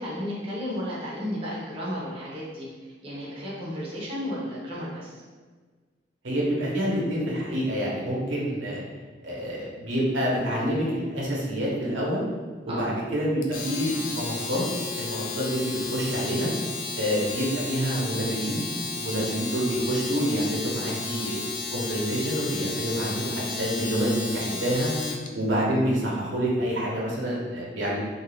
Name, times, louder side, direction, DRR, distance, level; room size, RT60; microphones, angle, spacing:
voice 1, 0.0-5.2 12.7-12.9, equal, 30° right, -6 dB, 0.6 m, -33 dB
voice 2, 6.2-8.8 9.2-12.2 12.6-14.6 15.0-16.5 17.0-18.6 18.9-21.4 21.7-24.9 25.3-28.0, equal, 90° right, -5 dB, 0.8 m, -27 dB
Domestic sounds home sounds, 13.4-25.3, left 4 dB, 45° left, 0.3 m, -33 dB
2.6 x 2.3 x 3.4 m, 1.4 s
head